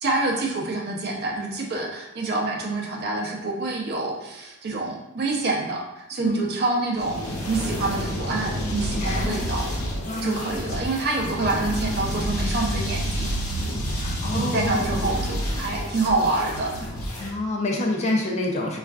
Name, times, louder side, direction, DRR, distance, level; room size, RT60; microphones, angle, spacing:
voice 1, 0.0-9.7 10.2-13.4 14.3-16.7, right 2 dB, 50° right, -1 dB, 0.6 m, -27 dB
sound 1, 7.0-17.3, equal, 80° left, 0.8 m, -29 dB
voice 2, 8.9-9.4 10.0-10.4 14.0-15.1 17.2-18.8, left 2 dB, 30° left, -1 dB, 0.5 m, -27 dB
4.3 x 2.4 x 2.3 m, 0.89 s
head